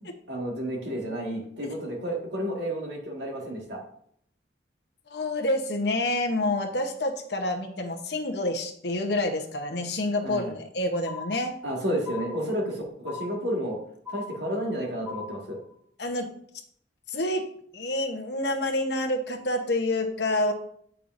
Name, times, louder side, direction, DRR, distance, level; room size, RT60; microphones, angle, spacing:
voice 1, 0.0-3.8 10.2-10.5 11.6-13.8 14.1-15.6, equal, 65° right, -1 dB, 1.8 m, -31 dB
voice 2, 5.1-11.6 16.0-16.3 17.1-20.5, left 1 dB, 60° left, 3 dB, 0.9 m, -28 dB
sound 1, 11.0-11.7 12.0-12.7 13.0-13.7 14.0-14.7 15.0-15.7, left 5 dB, 5° right, 2.0 m, -40 dB
8.1 x 5.5 x 2.6 m, 0.65 s
head